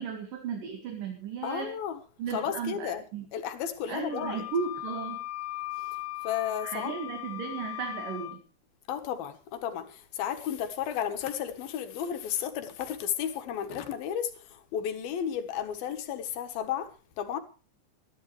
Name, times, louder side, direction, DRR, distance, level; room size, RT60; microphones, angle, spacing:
voice 1, 0.0-1.7 2.2-3.3 3.9-5.2 6.6-8.4, right 6 dB, 70° right, 3.5 m, -35 dB
voice 2, 1.4-2.0 2.3-3.0 3.3-4.4 5.8-6.0 6.2-7.0 8.9-16.9 17.2-17.4, left 9 dB, 85° left, 3.3 m, -33 dB
Wind instrument woodwind instrument, 4.1-8.4, left 17 dB, 65° left, 2.2 m, -38 dB
25.5 x 11.5 x 3.3 m
omnidirectional pair, 4.1 m